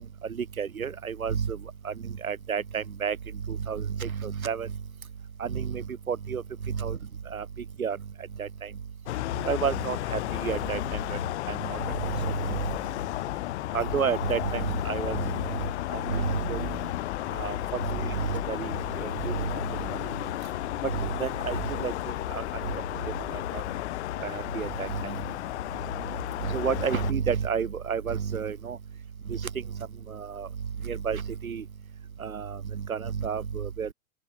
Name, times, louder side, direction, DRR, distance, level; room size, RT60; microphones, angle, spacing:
voice 1, 0.3-1.6 1.8-3.2 3.5-4.7 5.4-7.0 7.3-7.5 7.8-8.0 8.4-8.7 9.4-11.2 11.5-11.8 12.1-12.6 13.7-15.6 15.9-16.7 17.3-17.6 17.9-18.7 19.0-19.6 20.8-21.9 22.3-22.4 23.3-23.6 24.2-25.2 26.4-28.8 29.3-29.5 30.1-30.5 30.8-31.6 32.2-33.9, right 7 dB, 75° right, 5.7 m, -30 dB
sound 1, 9.1-27.1, left 16 dB, 50° left, 3.3 m, -33 dB
open air
figure-of-eight pair, 105°, 42 cm